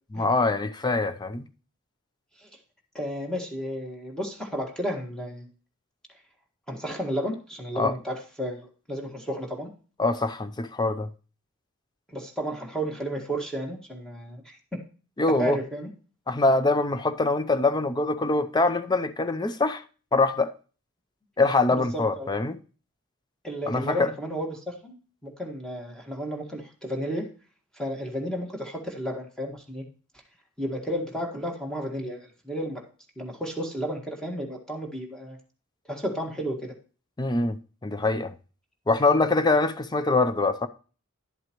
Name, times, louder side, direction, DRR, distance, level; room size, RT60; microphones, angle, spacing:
voice 1, 0.1-1.5 7.8-7.9 10.0-11.1 15.2-15.6 16.3-19.8 20.1-20.5 21.4-22.6 23.7-24.1 37.2-37.6 37.8-38.3 38.9-40.7, left 3 dB, 20° left, 0.5 m, -24 dB
voice 2, 2.9-5.5 6.7-9.7 12.1-14.8 15.4-15.9 21.7-22.3 23.4-24.9 25.2-27.3 27.7-29.8 30.6-32.8 33.2-35.4 35.9-36.7, equal, 5° left, 1.7 m, -32 dB
11.0 x 7.9 x 3.0 m
head